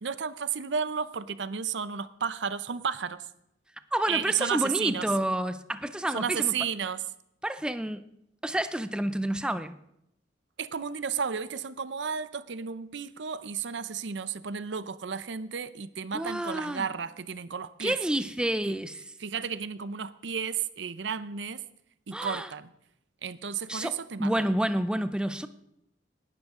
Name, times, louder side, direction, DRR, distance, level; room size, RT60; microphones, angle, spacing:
voice 1, 0.0-3.3 4.1-5.1 6.1-7.0 10.6-18.0 18.7-18.8 19.2-21.6 22.1-22.7 23.2-24.4, right 6 dB, 75° right, 0.7 m, -33 dB
voice 2, 3.9-6.5 7.4-8.0 8.4-9.8 16.1-16.9 17.8-19.0 22.1-22.5 23.7-25.5, right 1 dB, 5° right, 0.5 m, -29 dB
18.5 x 12.0 x 3.7 m
head